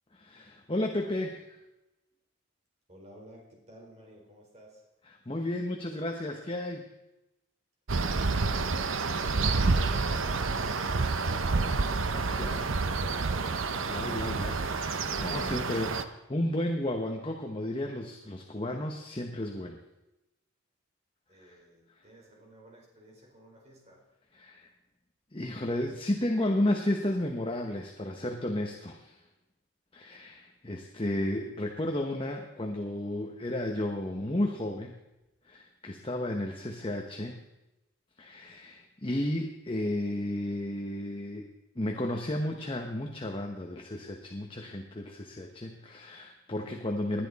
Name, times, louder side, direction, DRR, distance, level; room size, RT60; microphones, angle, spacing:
voice 1, 0.1-1.4 5.1-6.8 11.2-11.6 12.0-12.8 13.9-19.8 21.5-21.6 24.3-24.6 25.3-29.2 29.9-35.0 35.5-37.4 38.2-41.5 41.7-47.3, left 1 dB, 25° left, 2 dB, 1.0 m, -33 dB
voice 2, 2.9-4.8 21.3-24.0, equal, 30° right, -2 dB, 4.2 m, -54 dB
sound 1, 7.9-16.0, right 3 dB, 70° right, 0.8 m, -29 dB
20.0 x 11.0 x 4.2 m, 0.96 s
head